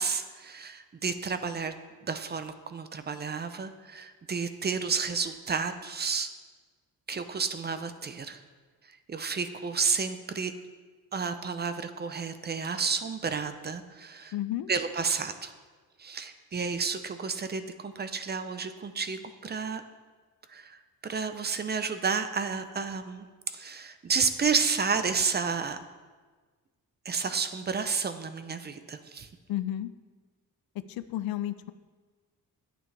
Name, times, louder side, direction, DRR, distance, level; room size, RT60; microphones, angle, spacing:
voice 1, 0.0-1.7 2.0-6.3 7.1-8.4 8.9-10.5 11.1-14.3 14.7-15.5 16.0-19.8 20.5-25.8 27.0-29.3, right 5 dB, 30° right, 10 dB, 0.6 m, -31 dB
voice 2, 14.3-14.7 29.5-29.9 30.8-31.7, left 13 dB, 80° left, 13 dB, 0.6 m, -32 dB
9.9 x 8.8 x 3.3 m, 1.4 s
cardioid pair, 100°, 36 cm